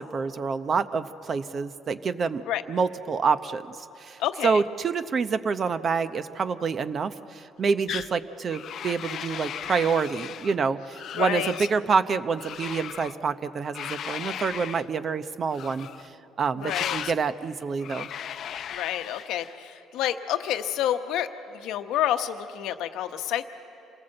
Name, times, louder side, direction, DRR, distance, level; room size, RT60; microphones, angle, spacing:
voice 1, 0.0-2.4 2.7-15.9 16.4-18.1, right 5 dB, 40° right, 12 dB, 0.8 m, -27 dB
voice 2, 4.2-4.6 11.2-11.5 16.6-17.1 18.7-23.4, left 11 dB, 75° left, 8 dB, 1.0 m, -29 dB
sound 1, 7.9-8.1 8.5-10.6 10.9-11.7 12.4-13.2 13.7-14.9 15.5-16.1 16.6-17.2 17.8-19.6, left 9 dB, 55° left, 0.5 m, -36 dB
27.5 x 18.5 x 7.8 m, 2.8 s
cardioid pair, 110°, 0 cm